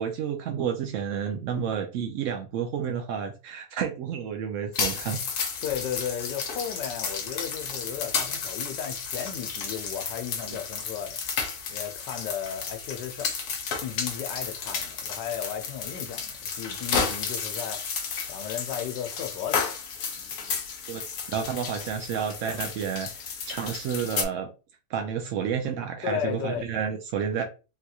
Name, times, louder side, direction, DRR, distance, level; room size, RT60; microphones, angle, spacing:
voice 1, 0.0-5.2 10.5-10.6 20.9-21.0 21.3-23.1 23.5-24.5 24.9-27.4, right 7 dB, 75° right, 0.7 m, -30 dB
sound 1, 4.7-24.3, left 5 dB, 70° left, 1.2 m, -32 dB
voice 2, 5.6-11.2 11.7-13.3 13.8-19.7 26.0-26.6, left 9 dB, 90° left, 1.2 m, -35 dB
3.8 x 2.3 x 2.8 m
omnidirectional pair, 1.8 m